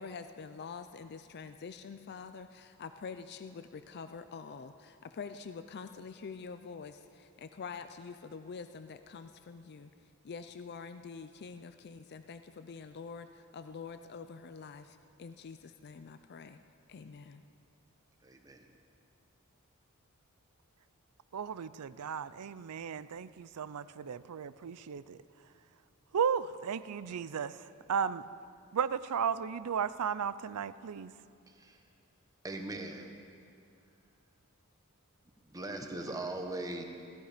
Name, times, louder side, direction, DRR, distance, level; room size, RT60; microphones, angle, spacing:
voice 1, 0.0-9.9 10.2-16.6 16.9-17.4, left 5 dB, 50° left, 10 dB, 0.4 m, -46 dB
voice 2, 18.2-18.6 31.5-31.8 32.4-33.1 35.4-36.8, right 2 dB, 15° right, 3 dB, 1.1 m, -40 dB
voice 3, 21.3-25.2 26.1-27.6 27.9-28.2 28.7-31.1, right 7 dB, 85° right, 15 dB, 0.5 m, -34 dB
16.5 x 14.0 x 5.1 m, 2.4 s
head